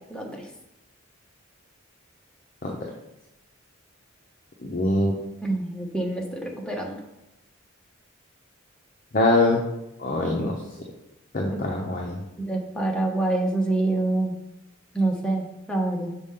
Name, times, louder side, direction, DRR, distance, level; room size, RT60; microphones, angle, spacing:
voice 1, 0.1-0.4 5.4-7.0 11.5-11.6 12.4-14.3 14.9-16.1, right 2 dB, 5° left, 0 dB, 0.8 m, -26 dB
voice 2, 4.6-5.1 9.1-9.6 10.0-10.6 11.3-12.2, left 2 dB, 40° left, 0 dB, 0.7 m, -23 dB
6.9 x 4.3 x 3.7 m, 0.94 s
head